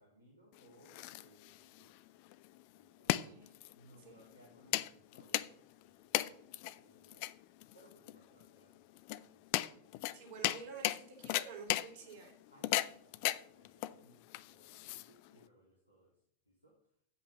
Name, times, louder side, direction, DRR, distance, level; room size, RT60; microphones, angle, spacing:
voice 1, 0.0-1.9 2.7-3.1 3.7-7.3 7.7-9.0 9.3-9.7 12.5-16.2 16.5-16.8, right 1 dB, 90° left, -3 dB, 2.2 m, -65 dB
sound 1, 0.5-15.4, left 16 dB, 45° left, 0.4 m, -38 dB
voice 2, 3.1-3.5 4.0-4.1 10.1-12.3, right 5 dB, 45° right, 1 dB, 2.7 m, -50 dB
7.8 x 5.7 x 7.0 m, 0.67 s
figure-of-eight pair, 90°, 0 cm